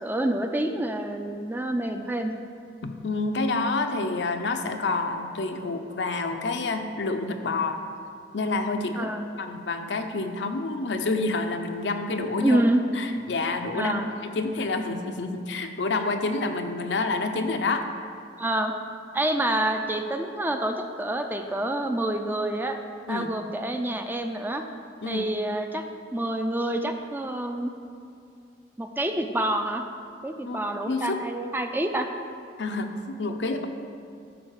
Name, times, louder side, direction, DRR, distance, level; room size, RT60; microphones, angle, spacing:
voice 1, 0.0-2.3 9.0-9.3 12.4-12.8 13.7-14.1 18.4-18.7 19.1-22.8 23.1-24.6 25.1-25.8 26.1-27.7 28.8-29.8 30.2-32.1, right 1 dB, 10° right, 5 dB, 0.4 m, -27 dB
voice 2, 2.8-7.8 8.3-9.1 9.4-12.6 12.9-14.0 14.3-17.9 23.1-23.3 25.0-25.2 30.4-31.2 32.6-33.7, left 3 dB, 75° left, 6 dB, 0.7 m, -28 dB
11.0 x 3.9 x 6.5 m, 2.5 s
head